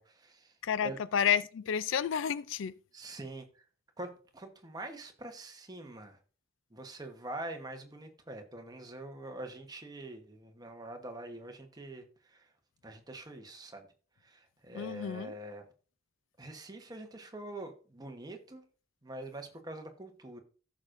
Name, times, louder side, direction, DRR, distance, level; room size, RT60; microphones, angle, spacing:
voice 1, 0.0-0.5 0.8-1.0 2.9-3.4 4.0-6.2 6.7-12.0 12.3-12.4 12.8-13.9 14.2-15.6 16.4-18.6 19.0-20.4, right 1 dB, 20° right, 1.1 m, -44 dB
voice 2, 0.6-2.7 14.7-15.3, left 8 dB, 65° left, 0.4 m, -30 dB
14.5 x 6.4 x 2.6 m
head